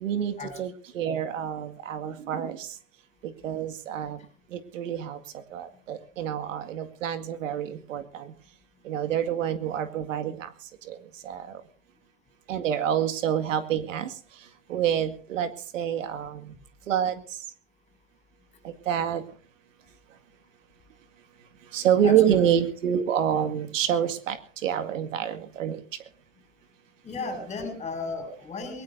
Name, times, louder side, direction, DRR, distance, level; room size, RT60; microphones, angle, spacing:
voice 1, 0.0-0.3 0.6-2.6 3.4-4.2 4.7-5.2 5.5-8.0 8.9-10.3 11.3-11.4 12.5-14.1 14.7-15.5 15.7-16.3 16.9-17.1 18.9-19.2 21.7-24.4 24.6-25.8, right 9 dB, 80° right, 9 dB, 2.1 m, -27 dB
voice 2, 22.0-22.4 27.0-28.8, left 3 dB, 20° left, 8 dB, 6.6 m, -34 dB
22.0 x 20.5 x 2.6 m, 0.42 s
supercardioid pair, 140°, 37 cm